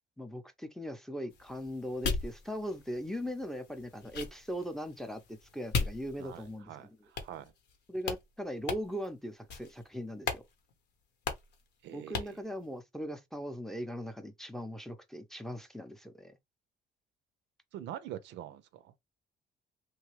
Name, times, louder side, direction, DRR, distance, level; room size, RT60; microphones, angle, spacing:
voice 1, 0.2-7.0 7.9-10.4 11.9-16.3, equal, ahead, 0.6 m, -39 dB
sound 1, 1.3-6.6 7.2-8.2 8.7-9.1 9.5-9.8 10.2-10.5 10.7-10.8 11.2-11.6 12.1-12.4, left 5 dB, 70° left, 0.9 m, -38 dB
voice 2, 6.2-7.5 11.8-12.4 17.7-19.0, right 12 dB, 80° right, 0.5 m, -45 dB
3.2 x 2.3 x 3.0 m
cardioid pair, 95°, 18 cm